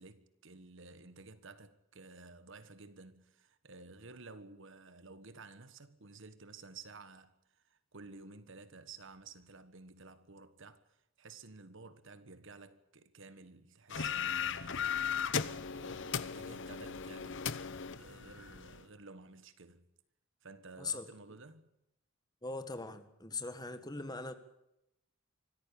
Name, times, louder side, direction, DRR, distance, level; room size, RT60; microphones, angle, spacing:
voice 1, 0.0-19.9 20.4-21.7, right 3 dB, 65° right, 1.5 m, -53 dB
sound 1, 13.9-18.8, left 7 dB, 60° left, 1.0 m, -37 dB
voice 2, 22.4-24.4, left 3 dB, 20° left, 1.6 m, -40 dB
25.0 x 14.5 x 8.6 m
head